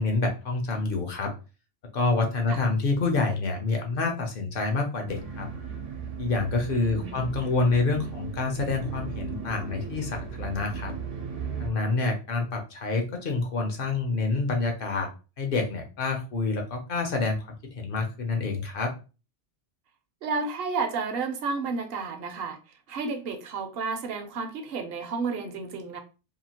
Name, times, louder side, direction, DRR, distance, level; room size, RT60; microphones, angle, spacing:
voice 1, 0.0-1.3 1.9-5.5 6.2-10.9 11.6-15.1 15.4-18.9, left 3 dB, 55° left, 0.7 m, -27 dB
sound 1, 5.1-11.7, right 6 dB, 85° right, 1.0 m, -36 dB
voice 2, 6.9-7.4 20.2-22.6 22.9-26.0, right 4 dB, 60° right, 0.8 m, -31 dB
2.8 x 2.3 x 2.8 m
omnidirectional pair, 1.2 m